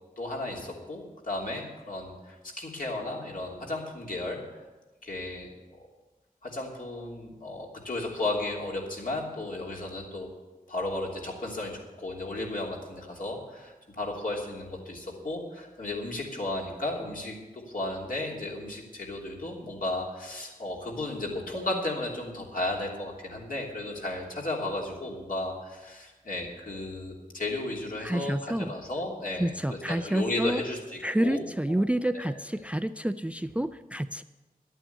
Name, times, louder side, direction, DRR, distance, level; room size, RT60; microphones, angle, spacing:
voice 1, 0.2-4.4 5.0-5.5 6.4-10.3 10.7-31.4 31.7-31.8 32.1-32.3, left 2 dB, 65° left, -2 dB, 3.1 m, -34 dB
voice 2, 28.0-28.7 29.4-30.6 31.0-34.2, right 1 dB, 10° right, 12 dB, 0.4 m, -29 dB
11.5 x 9.0 x 8.1 m, 1.2 s
wide cardioid pair, 65°, 15 cm